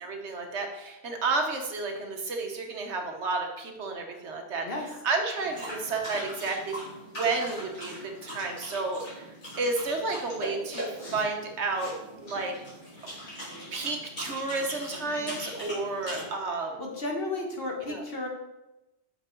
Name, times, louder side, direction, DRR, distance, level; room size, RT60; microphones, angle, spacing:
voice 1, 0.0-4.7 5.0-6.8 7.1-9.0 9.6-11.9 12.2-12.5 13.3-16.8 17.8-18.0, right 3 dB, 70° right, 3 dB, 1.3 m, -31 dB
sound 1, 5.3-16.2, equal, 75° left, 3.4 m, -41 dB
voice 2, 16.8-18.3, left 2 dB, 50° left, 0 dB, 1.5 m, -33 dB
6.6 x 5.6 x 4.4 m, 0.97 s
omnidirectional pair, 1.2 m